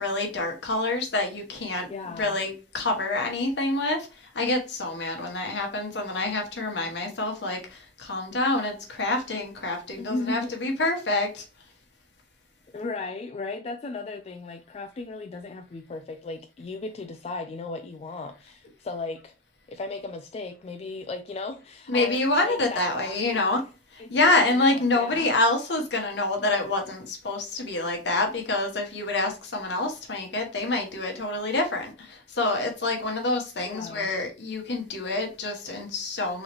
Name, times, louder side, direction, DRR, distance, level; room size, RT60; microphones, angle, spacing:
voice 1, 0.0-11.4 21.9-23.6 23.9-36.4, left 2 dB, 65° left, 1.1 m, -27 dB
voice 2, 1.9-2.4 10.0-10.5 12.7-19.3 19.7-23.7 24.0-24.2 24.6-25.3 33.6-34.1, left 3 dB, 35° left, 0.3 m, -36 dB
3.9 x 3.0 x 3.0 m
head